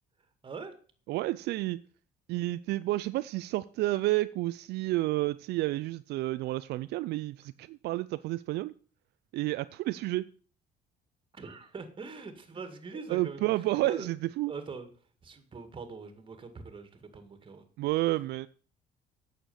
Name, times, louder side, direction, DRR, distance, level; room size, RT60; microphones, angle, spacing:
voice 1, 0.4-0.7 11.3-14.1 14.5-14.9 15.2-17.7, right 4 dB, 30° right, 8 dB, 2.0 m, -43 dB
voice 2, 1.1-1.8 2.3-8.7 9.3-10.3 13.1-14.5 17.8-18.5, right 18 dB, 75° right, 14 dB, 0.4 m, -30 dB
8.9 x 6.7 x 6.9 m, 0.42 s
cardioid pair, 110°, 17 cm